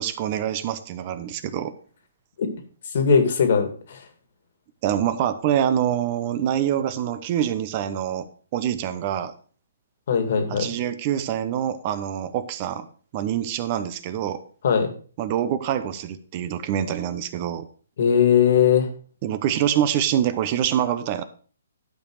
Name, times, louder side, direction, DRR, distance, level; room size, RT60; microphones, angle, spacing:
voice 1, 0.0-1.7 4.8-8.3 8.5-9.3 10.5-12.9 13.1-14.4 15.2-17.7 19.2-21.2, right 10 dB, 35° right, 12 dB, 0.8 m, -25 dB
voice 2, 2.9-4.0 10.1-10.7 14.6-14.9 18.0-18.9, left 7 dB, 55° left, 6 dB, 2.1 m, -19 dB
11.5 x 5.2 x 4.7 m, 0.42 s
hypercardioid pair, 145°, 0 cm